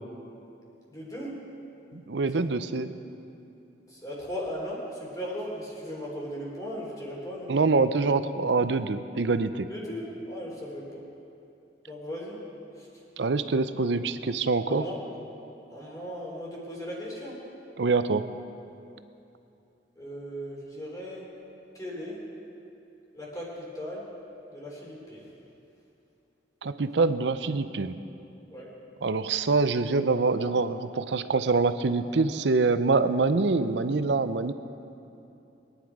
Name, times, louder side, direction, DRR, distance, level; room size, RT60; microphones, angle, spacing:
voice 1, 0.9-1.3 2.3-2.5 3.9-7.5 9.7-11.0 11.8-12.4 14.7-15.0 15.7-17.4 19.9-21.2 21.7-22.2 23.1-24.0 24.5-25.3 28.5-28.7, equal, 20° left, -4 dB, 3.5 m, -37 dB
voice 2, 1.9-2.9 7.5-9.7 13.2-14.8 17.8-18.3 26.6-28.0 29.0-34.5, right 3 dB, 85° right, 11 dB, 0.6 m, -25 dB
23.0 x 10.0 x 4.8 m, 2.8 s
head